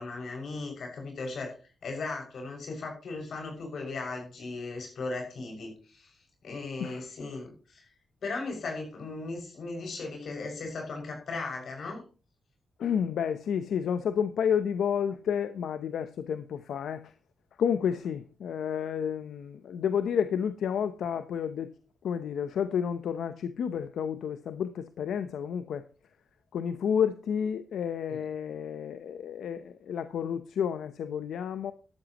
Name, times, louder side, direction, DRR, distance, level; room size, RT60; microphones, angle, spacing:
voice 1, 0.0-1.5 1.8-6.1 6.4-7.9 8.2-12.0 28.1-28.2, left 3 dB, 50° left, 6.1 m, -37 dB
voice 2, 12.8-17.1 17.6-21.7 22.0-25.9 26.5-31.7, left 8 dB, 75° left, 0.8 m, -30 dB
13.0 x 13.0 x 3.0 m
wide cardioid pair, 165°, 0 cm